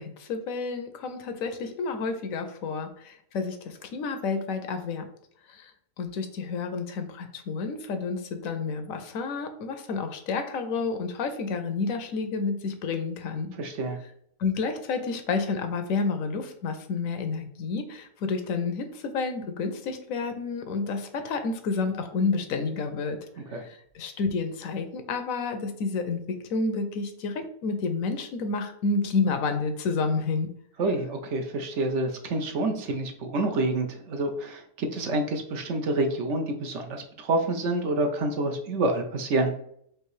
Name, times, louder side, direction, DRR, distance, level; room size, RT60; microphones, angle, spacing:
voice 1, 0.0-5.1 5.5-5.7 6.0-13.5 14.4-23.2 23.5-30.5, left 4 dB, 75° left, 7 dB, 1.0 m, -30 dB
voice 2, 13.6-14.0 23.5-23.6 30.8-39.5, right 2 dB, 65° right, 4 dB, 0.8 m, -28 dB
4.6 x 2.6 x 3.1 m, 0.66 s
omnidirectional pair, 1.5 m